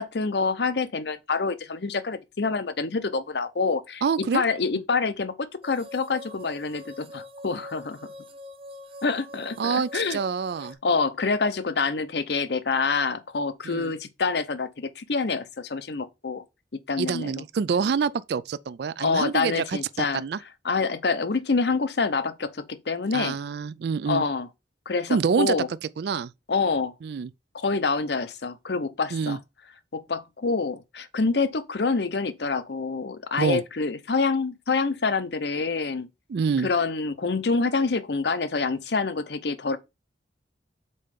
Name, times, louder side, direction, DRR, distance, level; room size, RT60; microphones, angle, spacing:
voice 1, 0.0-8.0 9.0-10.2 10.8-16.4 16.7-17.3 19.0-20.2 20.6-23.4 24.1-24.5 24.9-25.7 26.5-26.9 27.5-29.4 29.9-36.1 36.6-39.8, left 4 dB, 60° left, 0.7 m, -26 dB
voice 2, 4.0-4.4 9.6-10.8 13.6-13.9 17.0-20.4 23.1-24.2 25.1-25.6 26.0-26.3 27.0-27.3 29.1-29.4 33.4-33.6 36.3-36.7, right 6 dB, 60° right, 0.3 m, -26 dB
sound 1, 5.6-10.7, left 1 dB, 30° right, 0.8 m, -44 dB
5.4 x 4.3 x 5.1 m
head